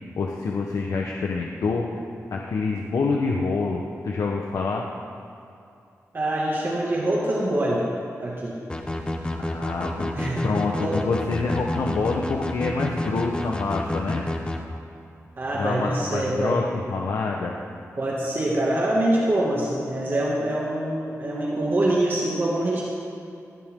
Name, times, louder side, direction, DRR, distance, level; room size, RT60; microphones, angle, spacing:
voice 1, 0.2-1.9 2.3-4.9 9.4-14.2 15.5-17.5, left 4 dB, 85° left, 0 dB, 1.1 m, -27 dB
voice 2, 6.1-7.9 8.2-8.5 10.1-10.5 10.8-11.0 11.6-11.7 15.4-16.6 18.0-22.8, right 1 dB, 40° right, -5 dB, 2.2 m, -24 dB
sound 1, 8.7-14.6, left 1 dB, 20° left, 1.2 m, -29 dB
19.0 x 17.0 x 3.8 m, 2.5 s
wide cardioid pair, 135°, 6 cm